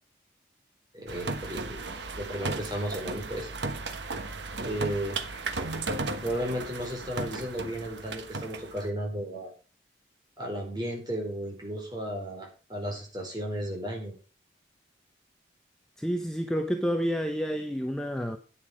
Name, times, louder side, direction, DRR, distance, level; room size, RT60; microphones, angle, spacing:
voice 1, 0.9-1.9 2.1-3.5 4.6-5.4 6.2-9.5 10.4-14.2, equal, 25° right, 4.4 m, -34 dB
sound 1, 1.1-8.9, right 3 dB, 80° right, 1.3 m, -35 dB
voice 2, 16.0-18.4, equal, 5° left, 0.7 m, -29 dB
10.0 x 9.5 x 5.0 m
head